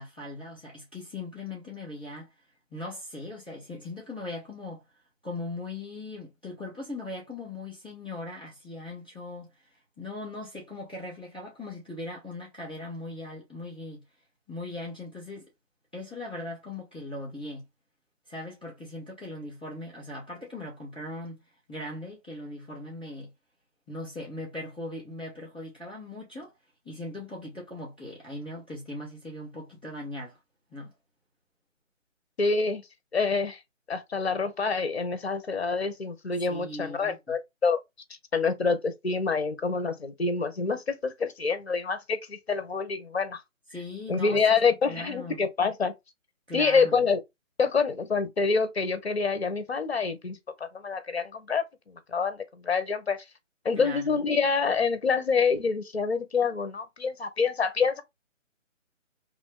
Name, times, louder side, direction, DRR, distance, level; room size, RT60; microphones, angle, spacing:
voice 1, 0.0-2.3 2.7-4.8 5.2-9.6 10.0-14.0 14.5-15.5 15.9-17.6 18.3-21.4 21.7-23.3 23.9-26.5 26.8-30.4 30.7-30.9 36.5-37.2 43.7-44.4 44.9-45.4 46.5-47.0 53.7-54.2, left 2 dB, 10° right, 0.9 m, -39 dB
voice 2, 32.4-32.8 33.1-33.6 33.9-37.8 38.3-43.4 44.1-45.9 46.5-47.2 47.6-53.2 53.6-58.0, left 5 dB, 55° left, 0.8 m, -27 dB
3.1 x 2.5 x 3.5 m
hypercardioid pair, 175°, 39 cm